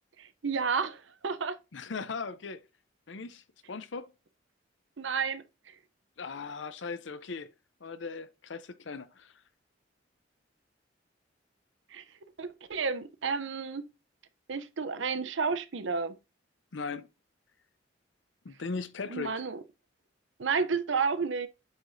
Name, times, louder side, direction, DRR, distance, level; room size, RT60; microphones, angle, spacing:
voice 1, 0.2-1.6 5.0-5.7 11.9-12.0 12.4-13.8 14.5-16.2 19.1-19.6 20.4-21.5, right 5 dB, 75° right, 0.7 m, -31 dB
voice 2, 1.7-2.6 3.1-4.1 6.2-7.5 7.8-9.3 16.7-17.1 18.4-19.4, left 4 dB, 70° left, 0.6 m, -38 dB
7.9 x 4.9 x 2.6 m
head